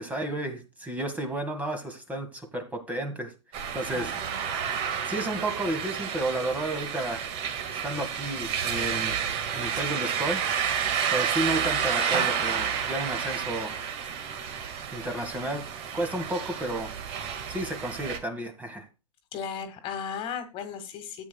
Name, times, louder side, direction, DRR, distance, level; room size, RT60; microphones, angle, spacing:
voice 1, 0.0-3.3 3.7-4.3 5.1-7.3 7.7-9.2 9.5-10.4 11.1-13.8 14.9-15.7 15.9-16.9 17.5-18.9, right 1 dB, 10° right, 6 dB, 1.6 m, -32 dB
sound 1, 3.5-18.2, right 8 dB, 35° right, 1.8 m, -30 dB
voice 2, 3.9-4.4 19.3-21.3, left 7 dB, 30° left, 8 dB, 1.7 m, -36 dB
13.5 x 8.8 x 2.3 m, 0.28 s
hypercardioid pair, 120°, 17 cm